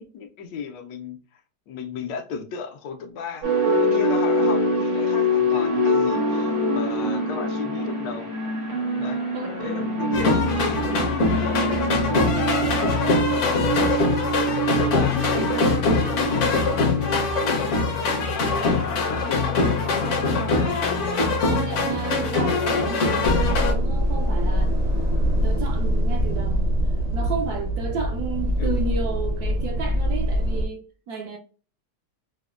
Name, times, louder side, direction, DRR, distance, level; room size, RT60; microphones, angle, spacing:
voice 1, 0.0-1.4 1.7-8.3 9.0-9.2 9.6-12.7 13.2-14.1 14.5-20.0 28.6-28.9, left 6 dB, 85° left, 1.3 m, -35 dB
sound 1, 3.4-16.8, equal, 85° right, 2.5 m, -25 dB
sound 2, 10.1-23.7, left 3 dB, 60° left, 0.8 m, -23 dB
voice 2, 21.5-24.8 25.4-31.4, right 5 dB, 70° right, 1.0 m, -32 dB
sound 3, 23.2-30.7, equal, 40° right, 0.6 m, -23 dB
4.9 x 2.1 x 2.3 m
omnidirectional pair, 1.9 m